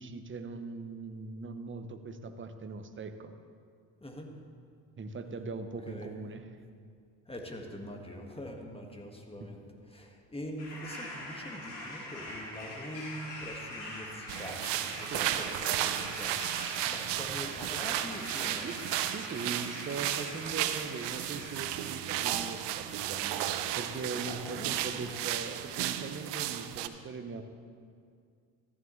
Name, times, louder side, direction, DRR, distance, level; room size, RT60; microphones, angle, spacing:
voice 1, 0.0-3.3 5.0-6.5 9.4-9.5 15.1-15.2 17.2-17.3 18.6-23.5 23.8-27.4, right 4 dB, 25° right, 8 dB, 0.9 m, -40 dB
voice 2, 4.0-4.3 5.9-6.1 7.3-18.7 24.2-25.3, equal, 10° left, 2 dB, 1.8 m, -44 dB
sound 1, 10.6-22.4 22.7-23.6, left 1 dB, 90° left, 2.7 m, -44 dB
sound 2, 14.3-26.9, right 12 dB, 55° right, 0.7 m, -34 dB
14.0 x 9.9 x 3.2 m, 2.2 s
hypercardioid pair, 55°, 50 cm